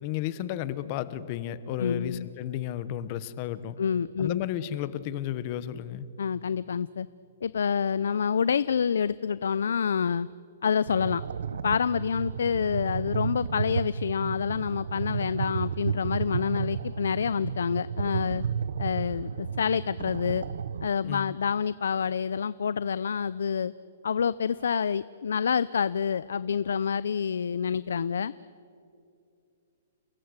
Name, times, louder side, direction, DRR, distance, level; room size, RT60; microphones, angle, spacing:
voice 1, 0.0-3.8 4.2-6.1 21.0-21.3, left 11 dB, 25° left, 15 dB, 0.9 m, -33 dB
voice 2, 1.8-2.3 3.8-4.4 6.2-7.1 7.4-10.3 10.6-11.2 11.6-18.4 18.8-20.4 20.8-23.7 24.0-28.3, left 7 dB, 80° left, 17 dB, 0.6 m, -27 dB
sound 1, 10.9-20.9, right 7 dB, 65° right, 0.8 m, -33 dB
29.5 x 21.0 x 9.7 m, 2.5 s
hypercardioid pair, 180°, 0 cm